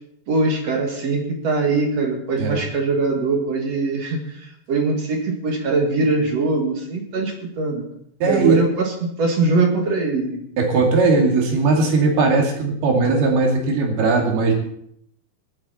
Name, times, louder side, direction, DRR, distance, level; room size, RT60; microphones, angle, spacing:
voice 1, 0.3-7.8 8.2-8.9 9.2-10.4, right 3 dB, 50° right, 2 dB, 2.5 m, -22 dB
voice 2, 8.2-8.6 10.6-14.5, right 3 dB, 85° right, 1 dB, 4.5 m, -18 dB
23.0 x 8.8 x 4.3 m, 0.70 s
omnidirectional pair, 4.4 m